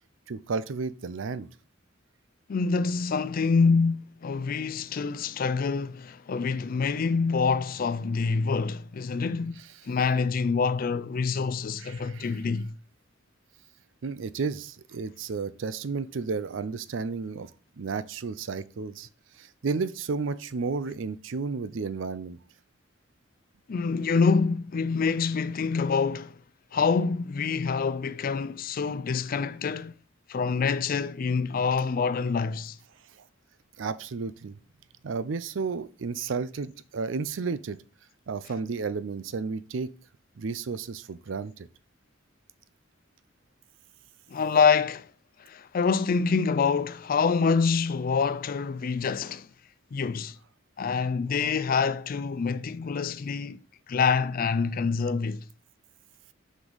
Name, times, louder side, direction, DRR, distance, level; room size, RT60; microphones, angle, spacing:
voice 1, 0.3-1.5 11.8-12.4 14.0-17.5 17.8-19.1 19.4-22.4 33.8-34.6 35.0-37.8 38.3-39.9 40.4-41.7, right 4 dB, 75° right, 0.5 m, -32 dB
voice 2, 2.5-9.6 9.9-12.7 23.7-26.3 26.7-29.9 30.3-32.8 44.3-45.1 45.5-49.5 49.9-50.4 50.8-53.6 53.9-55.4, left 5 dB, 45° left, 0.4 m, -26 dB
6.0 x 5.2 x 3.9 m
head